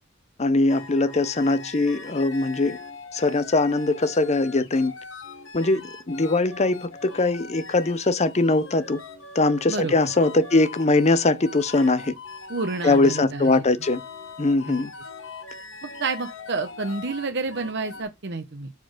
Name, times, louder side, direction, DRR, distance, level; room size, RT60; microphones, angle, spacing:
voice 1, 0.4-2.8 3.1-4.9 5.5-9.0 9.3-12.1 12.8-14.0 14.4-14.9, left 2 dB, 35° left, 0.7 m, -21 dB
sound 1, 0.7-18.0, left 4 dB, 70° left, 1.4 m, -41 dB
voice 2, 12.5-13.7 14.7-14.8 15.8-18.7, right 3 dB, 60° right, 1.0 m, -29 dB
7.5 x 3.9 x 5.0 m
head